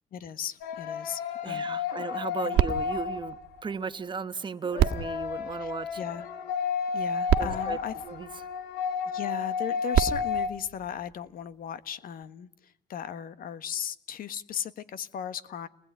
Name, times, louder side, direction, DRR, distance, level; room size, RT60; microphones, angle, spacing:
voice 1, 0.1-1.8 2.4-2.6 5.6-5.7 6.0-6.3 6.9-7.9 9.1-12.5 12.9-15.7, left 9 dB, 60° left, 13 dB, 1.5 m, -36 dB
sound 1, 0.6-3.7 4.6-10.5, left 6 dB, 85° left, 2.2 m, -32 dB
voice 2, 1.4-3.4 3.6-6.0 7.4-7.8 8.0-8.3, right 5 dB, 30° right, 11 dB, 1.3 m, -35 dB
sound 2, 2.5-4.2 4.7-6.3 7.0-7.1 7.3-8.9 9.7-11.5 12.2-12.3, right 10 dB, 75° right, 1.7 m, -30 dB
29.5 x 20.0 x 9.5 m, 0.76 s
cardioid pair, 110°, 17 cm